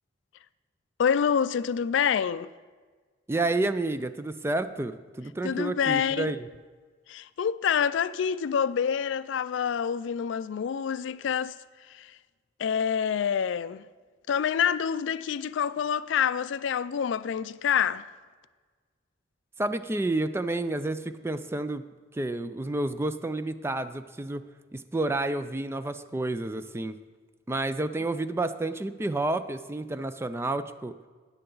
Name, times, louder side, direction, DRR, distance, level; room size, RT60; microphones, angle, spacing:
voice 1, 1.0-2.5 5.4-6.3 7.1-11.6 11.9-12.2 12.6-13.9 14.3-18.1, left 7 dB, 75° left, 0.3 m, -27 dB
voice 2, 3.3-6.5 19.6-21.8 22.1-24.4 24.7-27.0 27.5-30.9, right 2 dB, 15° right, 0.3 m, -30 dB
13.5 x 9.8 x 3.9 m
head